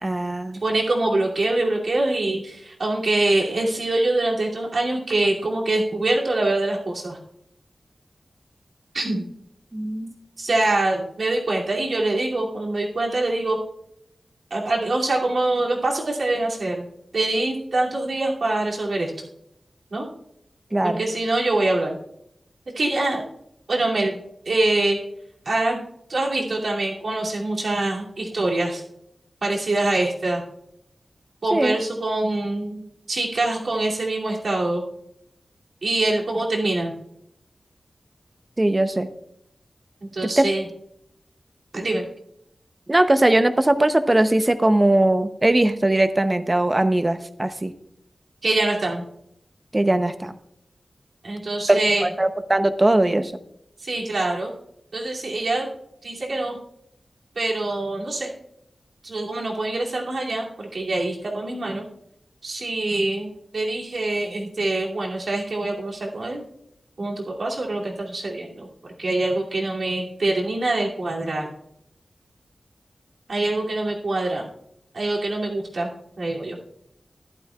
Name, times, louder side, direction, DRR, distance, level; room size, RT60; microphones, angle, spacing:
voice 1, 0.0-0.6 9.7-10.2 20.7-21.1 31.5-31.8 38.6-39.1 40.2-40.5 42.9-47.7 49.7-50.4 51.7-53.3, right 1 dB, 25° right, 10 dB, 0.7 m, -20 dB
voice 2, 0.6-7.2 8.9-9.3 10.4-13.6 14.5-16.9 17.1-19.3 19.9-20.1 20.8-22.0 22.7-23.2 23.7-24.2 24.5-25.0 25.4-25.8 26.1-28.8 29.4-30.4 31.4-32.8 33.1-34.8 35.8-36.9 40.0-40.6 41.7-42.0 48.4-49.0 51.2-52.1 53.8-54.5 54.9-55.7 56.0-56.6 57.4-58.3 59.0-61.9 62.4-66.4 67.0-68.7 69.0-71.5 73.3-74.5 74.9-75.9 76.2-76.6, right 2 dB, 75° right, -3 dB, 2.6 m, -24 dB
14.5 x 12.0 x 2.4 m, 0.75 s
wide cardioid pair, 85°, 0 cm